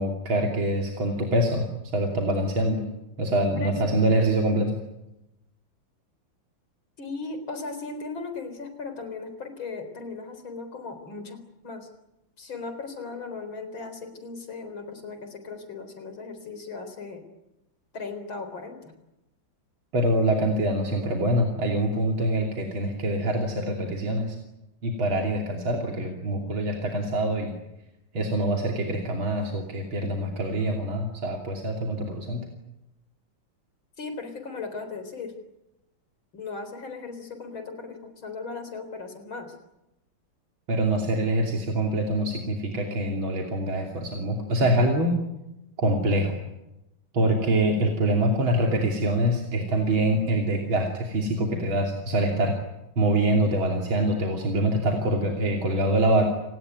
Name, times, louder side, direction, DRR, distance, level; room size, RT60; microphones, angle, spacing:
voice 1, 0.0-1.7 1.9-2.8 3.2-4.8 19.9-24.4 24.8-27.6 28.1-32.5 40.7-45.2 45.8-46.4 47.1-52.5 53.0-56.3, right 1 dB, 85° right, 1 dB, 3.7 m, -25 dB
voice 2, 3.5-4.0 7.0-11.9 12.4-17.2 17.9-18.9 34.0-35.3 36.3-39.6, left 4 dB, 80° left, 8 dB, 4.9 m, -37 dB
30.0 x 19.0 x 9.5 m, 0.93 s
omnidirectional pair, 2.2 m